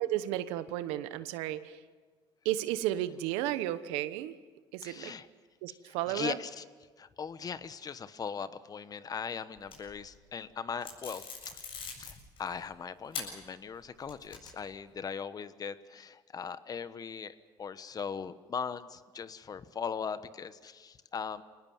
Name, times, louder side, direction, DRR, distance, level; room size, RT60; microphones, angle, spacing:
voice 1, 0.0-1.8 2.4-4.3 4.7-5.1 5.6-6.4, right 13 dB, 85° right, 13 dB, 1.0 m, -33 dB
voice 2, 4.8-5.3 5.7-6.6 7.0-11.6 12.0-21.4, left 6 dB, 40° left, 14 dB, 1.1 m, -39 dB
sound 1, 9.6-10.2 10.8-12.6 13.1-13.3 13.7-14.7, left 5 dB, 60° left, 7.6 m, -42 dB
24.5 x 18.5 x 7.2 m, 1.5 s
supercardioid pair, 80°, 10 cm